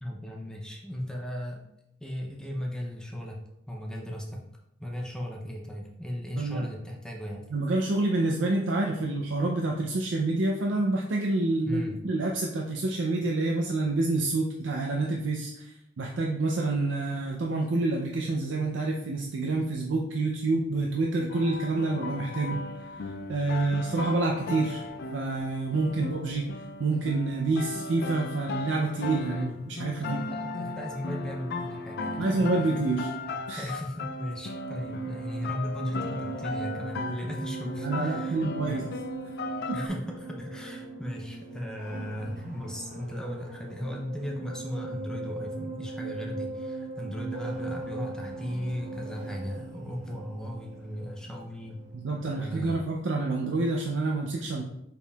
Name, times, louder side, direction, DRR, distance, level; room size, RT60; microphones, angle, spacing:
voice 1, 0.0-1.7 2.0-3.4 3.7-4.5 4.8-7.4 11.6-12.0 22.5-22.8 26.0-26.1 29.3-32.9 33.6-38.9 39.7-51.8 52.2-52.9, equal, 5° left, -1 dB, 0.5 m, -37 dB
voice 2, 6.4-6.7 7.5-22.6 23.3-24.8 25.1-30.2 32.2-33.1 33.5-33.7 37.8-38.8 39.7-39.8 51.9-54.6, right 2 dB, 70° right, 1 dB, 0.5 m, -28 dB
sound 1, 21.3-39.9, left 3 dB, 60° left, 0.4 m, -37 dB
sound 2, 33.9-52.4, right 3 dB, 45° right, 0.8 m, -40 dB
5.1 x 4.5 x 2.3 m, 0.83 s
head